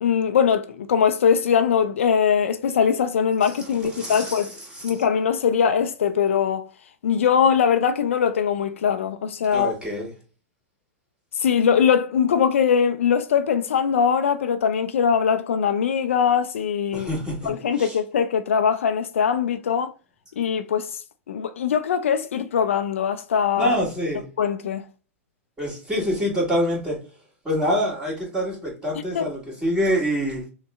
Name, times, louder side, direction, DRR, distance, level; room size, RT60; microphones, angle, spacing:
voice 1, 0.0-4.5 4.8-6.7 7.0-9.7 11.4-17.1 17.4-19.9 20.4-21.0 21.3-23.8 24.4-24.9 29.1-29.3, left 7 dB, 60° left, 0.4 m, -21 dB
voice 2, 3.9-5.0 9.5-10.1 16.9-17.5 17.8-18.0 23.6-24.2 25.6-27.0 27.4-30.4, equal, 10° right, 2.3 m, -26 dB
6.0 x 2.2 x 3.6 m
figure-of-eight pair, 100°, 8 cm